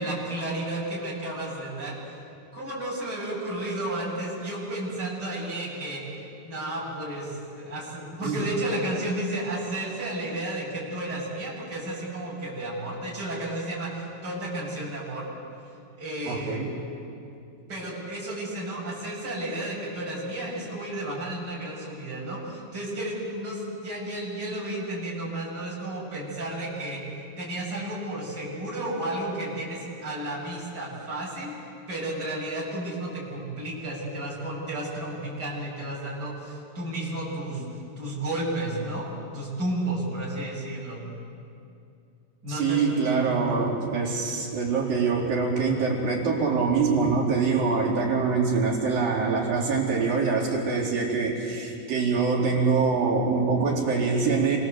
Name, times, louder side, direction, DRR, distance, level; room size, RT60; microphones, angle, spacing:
voice 1, 0.0-2.0 2.5-6.0 6.4-15.2 16.0-16.6 17.7-27.0 27.4-31.5 31.9-37.6 38.0-39.1 39.3-41.1 42.4-43.8, right 1 dB, 25° right, -6 dB, 8.4 m, -32 dB
voice 2, 16.3-16.7 42.5-54.6, right 4 dB, 65° right, -2 dB, 5.7 m, -24 dB
29.0 x 25.0 x 8.1 m, 2.5 s
omnidirectional pair, 4.3 m